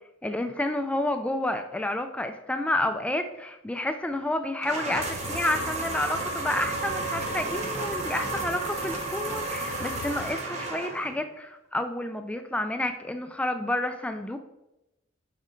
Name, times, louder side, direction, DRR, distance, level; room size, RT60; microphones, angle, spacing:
voice 1, 0.2-14.4, left 1 dB, 5° left, 7 dB, 0.3 m, -30 dB
sound 1, 4.6-11.2, right 2 dB, 35° right, 1.2 m, -32 dB
sound 2, 4.9-10.3, left 4 dB, 80° left, 0.5 m, -45 dB
6.5 x 4.9 x 3.8 m, 0.92 s
head